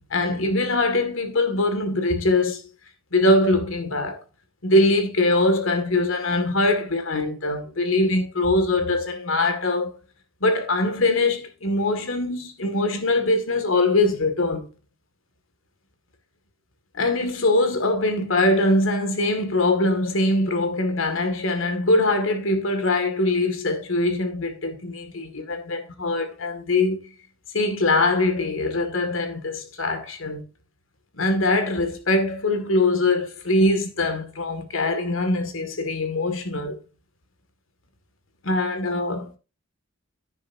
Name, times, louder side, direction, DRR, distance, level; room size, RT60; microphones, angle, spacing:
voice 1, 0.0-2.6 3.1-4.2 4.6-9.9 10.4-14.7 16.9-27.0 27.5-30.4 31.2-36.8 38.4-39.3, left 2 dB, 75° left, 2.1 m, -22 dB
10.5 x 9.5 x 2.7 m
head